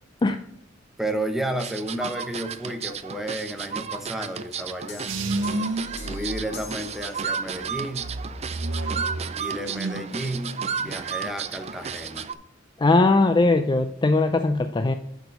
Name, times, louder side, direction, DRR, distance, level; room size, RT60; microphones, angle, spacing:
voice 1, 1.0-5.1 6.0-8.1 9.4-12.3, right 1 dB, ahead, 5 dB, 0.9 m, -32 dB
sound 1, 1.6-12.3, right 6 dB, 35° right, 0.5 m, -33 dB
sound 2, 4.9-7.8, left 3 dB, 60° left, 2.3 m, -44 dB
sound 3, 5.1-7.1 7.6-10.2 10.5-11.0, right 2 dB, 85° right, 0.9 m, -31 dB
voice 2, 12.8-14.9, left 3 dB, 25° left, 8 dB, 0.4 m, -20 dB
6.8 x 6.1 x 5.3 m, 0.71 s
head